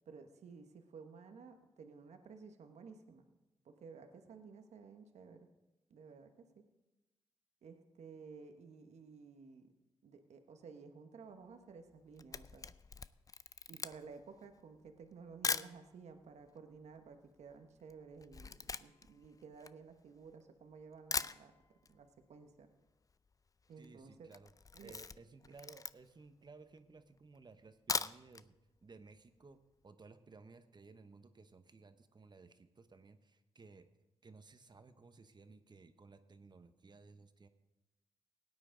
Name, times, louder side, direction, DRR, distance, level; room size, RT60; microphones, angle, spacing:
voice 1, 0.1-3.3 3.6-5.5 5.9-6.6 7.6-9.7 10.0-12.7 13.7-21.5 21.9-22.7 23.7-24.3 24.7-25.0 25.5-25.6, right 5 dB, 75° right, 6 dB, 1.1 m, -54 dB
Camera, 11.9-15.8 16.5-16.6 16.7-20.4 20.8-20.9 21.1-22.0 22.2-22.3 22.6-22.7 22.9-23.3 23.7-23.9 24.3-26.3 26.8-26.9 27.7-28.5 28.8-28.9 29.3-29.4, left 4 dB, 30° left, 0.4 m, -41 dB
voice 2, 23.8-24.5 24.8-33.9 34.2-37.5, right 4 dB, 40° right, 10 dB, 1.0 m, -58 dB
17.0 x 9.5 x 3.8 m, 1.0 s
cardioid pair, 60°, 12 cm